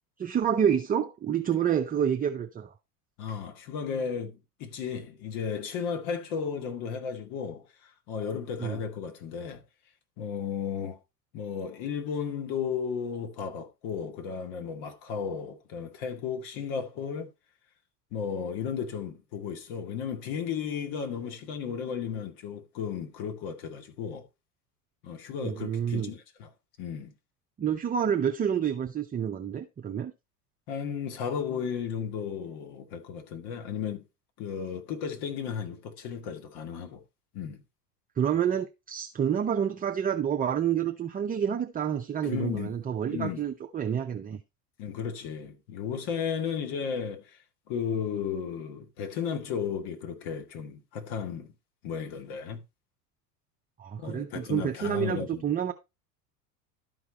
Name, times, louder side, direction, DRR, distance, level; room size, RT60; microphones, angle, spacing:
voice 1, 0.2-2.7 8.6-8.8 25.4-26.1 27.6-30.1 38.2-44.4 53.8-55.7, right 8 dB, 20° right, 0.6 m, -28 dB
voice 2, 3.2-4.3 4.6-9.6 10.2-11.0 11.3-17.3 18.1-24.2 25.0-26.5 26.8-27.1 30.7-34.0 34.4-37.0 37.3-37.6 42.2-42.7 43.1-43.4 44.8-47.3 47.7-51.5 51.8-52.6 54.0-55.4, left 7 dB, 50° left, 2.1 m, -34 dB
12.0 x 4.9 x 4.2 m
figure-of-eight pair, 80°, 47 cm